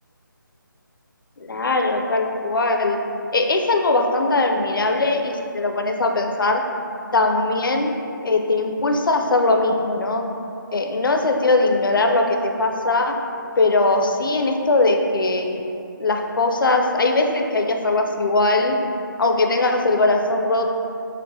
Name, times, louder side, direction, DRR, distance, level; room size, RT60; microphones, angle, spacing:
voice 1, 1.4-3.0 3.3-6.6 7.1-7.9 8.2-10.2 10.7-13.2 13.6-15.6 16.0-18.8 19.2-20.7, left 2 dB, 75° left, 3 dB, 0.4 m, -20 dB
5.4 x 2.1 x 2.5 m, 2.7 s
figure-of-eight pair, 155°, 11 cm